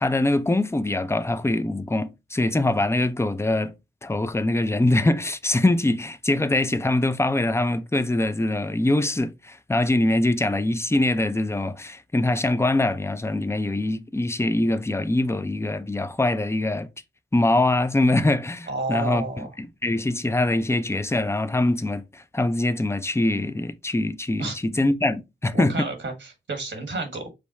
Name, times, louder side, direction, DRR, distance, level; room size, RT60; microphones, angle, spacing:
voice 1, 0.0-3.7 4.0-16.9 17.3-25.9, left 2 dB, 15° left, 0.6 m, -23 dB
voice 2, 18.7-19.5 24.4-24.5 25.5-27.3, right 3 dB, 70° right, 1.4 m, -30 dB
5.1 x 2.2 x 4.1 m
cardioid pair, 55°, 20 cm